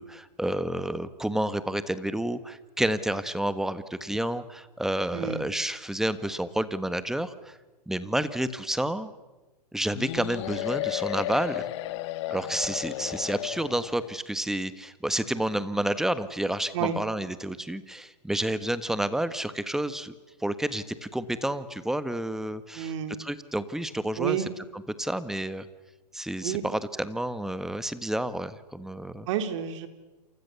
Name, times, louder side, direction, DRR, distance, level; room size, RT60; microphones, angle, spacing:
voice 1, 0.0-7.6 7.9-9.1 9.7-11.7 12.3-20.1 20.4-22.9 23.2-24.4 24.7-25.7 26.1-29.3, right 1 dB, ahead, 13 dB, 1.4 m, -30 dB
voice 2, 5.1-5.4 16.7-17.0 22.7-23.2 24.2-24.5 26.4-26.6 29.3-29.9, right 9 dB, 50° right, 8 dB, 3.7 m, -29 dB
sound 1, 9.9-14.1, left 15 dB, 45° left, 1.6 m, -33 dB
28.5 x 28.5 x 7.1 m, 1.1 s
hypercardioid pair, 130°, 21 cm